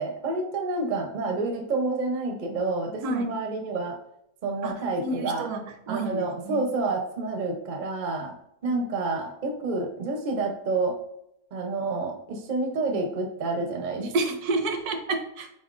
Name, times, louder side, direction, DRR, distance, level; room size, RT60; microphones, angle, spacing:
voice 1, 0.0-4.0 4.4-5.5 5.9-8.3 8.6-11.0 11.5-14.1, right 3 dB, 50° right, 3 dB, 0.6 m, -29 dB
voice 2, 3.0-3.3 4.6-4.7 5.0-6.6 14.1-15.5, right 2 dB, 75° right, 6 dB, 1.1 m, -29 dB
4.3 x 4.2 x 2.4 m, 0.77 s
omnidirectional pair, 1.7 m